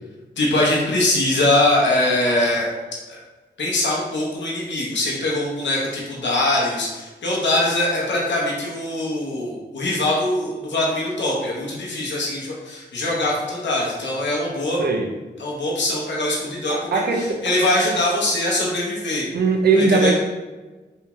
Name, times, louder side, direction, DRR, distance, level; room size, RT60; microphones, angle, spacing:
voice 1, 0.4-2.7 3.1-3.2 3.6-14.8 15.4-19.3 19.7-20.1, left 1 dB, 70° left, -4 dB, 0.8 m, -22 dB
voice 2, 16.7-17.4 19.3-20.1, right 4 dB, 55° right, 3 dB, 0.5 m, -19 dB
2.9 x 2.7 x 2.3 m, 1.2 s
cardioid pair, 45°, 20 cm